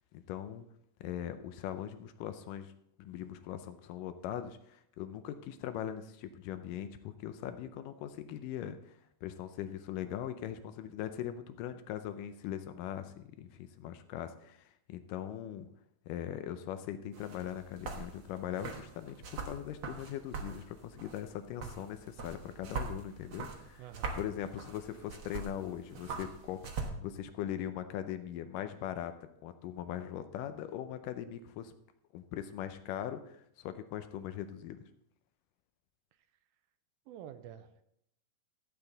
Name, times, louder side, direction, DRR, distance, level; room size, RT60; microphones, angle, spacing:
voice 1, 0.1-0.6 1.0-2.7 3.0-8.9 9.2-15.7 16.1-23.8 24.2-29.1 29.4-31.7 32.1-34.8, left 10 dB, 80° left, 10 dB, 2.0 m, -40 dB
sound 1, 17.1-26.9, right 4 dB, 60° right, 1.4 m, -43 dB
voice 2, 23.8-24.2 37.1-37.8, right 10 dB, 85° right, 10 dB, 2.5 m, -48 dB
14.0 x 8.5 x 3.9 m, 0.74 s
omnidirectional pair, 4.3 m